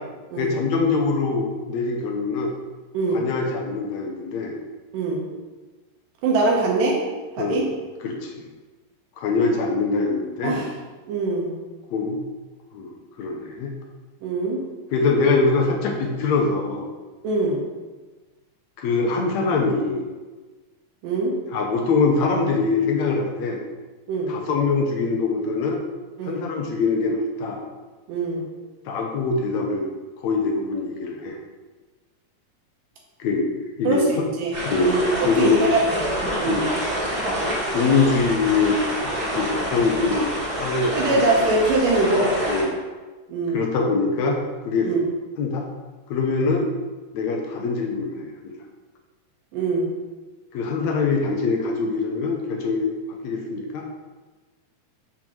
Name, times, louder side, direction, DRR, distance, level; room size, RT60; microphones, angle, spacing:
voice 1, 0.4-2.5 3.1-4.5 7.4-7.6 8.0-8.5 9.2-10.6 11.9-12.2 12.7-13.7 14.9-16.9 18.8-20.1 21.5-23.6 24.3-25.8 26.2-27.6 28.9-29.9 30.2-31.4 33.2-33.5 33.8-34.3 34.7-35.0 35.2-35.6 36.5-36.7 37.7-38.8 39.3-40.3 40.6-41.3 42.5-42.8 43.5-44.4 44.6-44.9 45.4-45.6 46.1-46.7 47.1-48.5 50.5-52.9 53.2-53.9, left 4 dB, 75° left, 1 dB, 1.8 m, -23 dB
voice 2, 6.2-7.0 7.4-7.7 10.4-10.7 11.1-11.5 14.2-14.6 17.2-17.6 21.0-21.3 24.1-24.4 26.2-26.4 28.1-28.5 33.8-34.5 34.8-35.0 35.4-36.1 36.4-36.7 41.0-42.3 43.3-43.6 44.8-45.0 49.5-49.9, right 3 dB, 90° right, -2 dB, 2.6 m, -23 dB
sound 1, 34.5-42.6, equal, 35° right, 2.2 m, -27 dB
6.1 x 3.8 x 5.9 m, 1.3 s
omnidirectional pair, 3.8 m